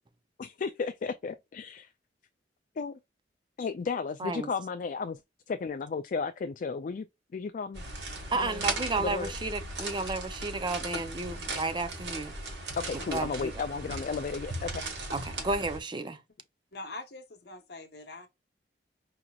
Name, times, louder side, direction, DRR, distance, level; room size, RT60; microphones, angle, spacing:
voice 1, 0.4-1.9 2.8-2.9 3.6-5.2 5.5-7.1 7.3-7.8 8.3-8.6 9.0-9.3 12.8-14.9, left 5 dB, 45° left, 0.3 m, -34 dB
sound 1, 7.7-15.8, right 2 dB, 75° right, 1.4 m, -37 dB
voice 2, 8.3-12.3 13.1-13.5 15.1-16.2, right 3 dB, 25° right, 0.5 m, -32 dB
voice 3, 16.7-18.3, left 2 dB, 65° left, 1.0 m, -43 dB
5.0 x 2.9 x 2.3 m
head